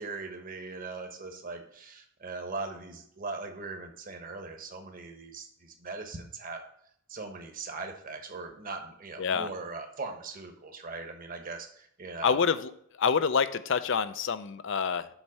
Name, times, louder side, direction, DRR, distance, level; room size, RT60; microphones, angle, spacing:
voice 1, 0.0-6.6 7.1-12.4, right 3 dB, 40° right, 5 dB, 1.2 m, -40 dB
voice 2, 9.2-9.5 12.2-12.7 13.0-15.1, left 6 dB, 60° left, 13 dB, 0.5 m, -27 dB
7.2 x 4.5 x 6.5 m, 0.67 s
head